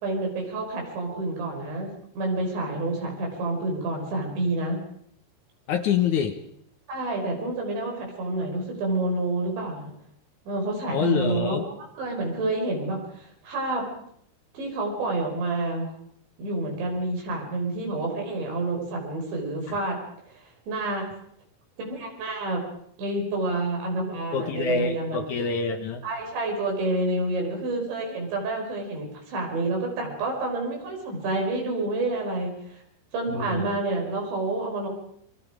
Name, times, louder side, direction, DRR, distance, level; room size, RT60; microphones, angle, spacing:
voice 1, 0.0-1.9 2.2-4.8 6.9-9.9 10.5-13.9 14.5-15.9 16.4-20.0 20.3-21.0 21.8-22.6 23.0-25.2 26.0-32.8 33.1-34.9, right 2 dB, 90° right, 1 dB, 7.6 m, -28 dB
voice 2, 5.7-6.4 10.9-11.7 19.7-19.8 24.3-26.0 33.3-33.7, left 7 dB, 65° left, 6 dB, 1.9 m, -26 dB
28.5 x 23.0 x 5.1 m, 0.70 s
omnidirectional pair, 5.0 m